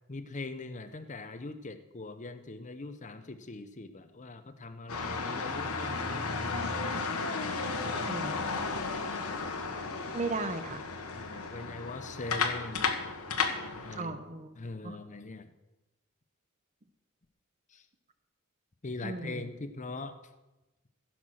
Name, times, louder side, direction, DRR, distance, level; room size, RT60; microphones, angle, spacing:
voice 1, 0.1-8.0 11.1-12.9 13.8-14.2 14.6-15.5 17.7-17.8 18.8-20.1, left 3 dB, 35° left, 10 dB, 0.7 m, -42 dB
sound 1, 4.9-14.0, left 4 dB, 85° left, 1.3 m, -34 dB
voice 2, 7.9-8.4 10.1-10.8 11.2-11.3 14.0-14.5 14.8-15.0 19.0-19.5, right 3 dB, 35° right, 10 dB, 0.8 m, -36 dB
15.5 x 5.9 x 6.3 m, 1.1 s
head